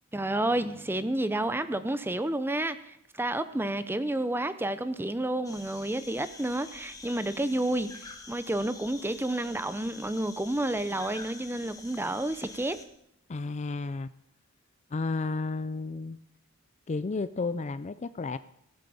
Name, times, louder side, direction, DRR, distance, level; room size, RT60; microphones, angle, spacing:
voice 1, 0.1-12.8, right 1 dB, 10° right, 12 dB, 0.7 m, -30 dB
sound 1, 5.4-12.8, left 3 dB, 20° left, 1.6 m, -47 dB
voice 2, 13.3-14.1 14.9-16.2 16.9-18.4, left 3 dB, 35° left, 14 dB, 0.4 m, -32 dB
17.0 x 9.1 x 7.0 m, 0.75 s
head